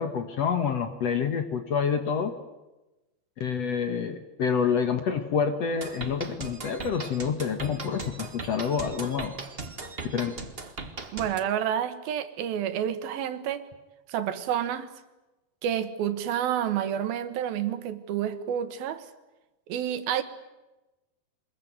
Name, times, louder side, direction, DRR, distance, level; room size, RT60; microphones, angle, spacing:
voice 1, 0.0-2.3 3.4-9.3 10.1-10.3, left 6 dB, 55° left, 2.1 m, -28 dB
sound 1, 5.8-11.4, right 3 dB, 45° right, 0.7 m, -38 dB
voice 2, 11.1-13.7 14.1-14.9 15.6-19.1 19.7-20.2, right 10 dB, 80° right, 3.2 m, -29 dB
25.0 x 21.5 x 9.3 m
omnidirectional pair, 4.3 m